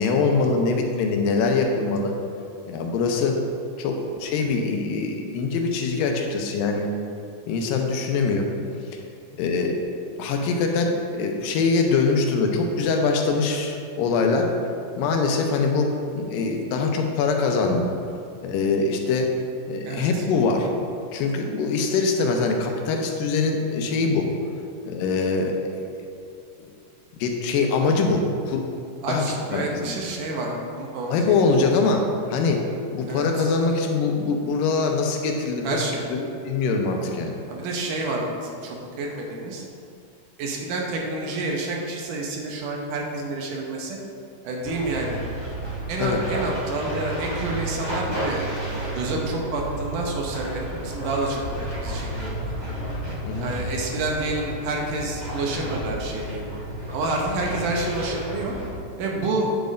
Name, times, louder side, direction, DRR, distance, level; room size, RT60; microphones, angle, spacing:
voice 1, 0.0-2.1 2.7-3.4 3.8-6.9 7.5-8.5 9.4-9.8 10.2-14.5 15.0-17.9 18.4-19.3 19.7-20.7 21.1-24.3 24.9-25.9 26.6-26.7 27.2-28.7 29.1-29.2 29.5-30.0 31.1-32.6 32.9-35.8 36.1-36.2 36.4-37.4 46.0-46.2 53.2-53.5, left 4 dB, 90° left, 3 dB, 2.4 m, -23 dB
voice 2, 19.8-20.2 29.0-31.4 33.1-33.5 35.6-36.1 37.5-39.6 40.4-44.0 44.4-45.2 45.9-48.5 48.9-51.4 51.7-52.8 53.4-56.5 56.9-58.5 59.0-59.5, right 2 dB, 75° right, -1 dB, 2.3 m, -29 dB
sound 1, 44.6-58.8, right 1 dB, 55° right, 0.4 m, -32 dB
9.2 x 6.8 x 2.6 m, 2.4 s
omnidirectional pair, 3.9 m